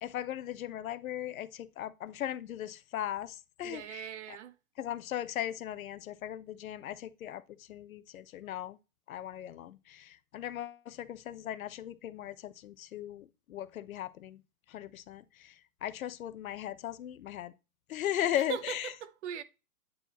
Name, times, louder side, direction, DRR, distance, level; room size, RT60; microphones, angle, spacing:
voice 1, 0.0-4.1 4.8-8.8 9.1-14.4 14.7-17.5 17.9-18.9, left 11 dB, 65° left, 0.8 m, -38 dB
voice 2, 3.6-4.6 18.4-19.4, right 9 dB, 50° right, 0.9 m, -40 dB
8.7 x 4.7 x 3.0 m
hypercardioid pair, 145°, 45 cm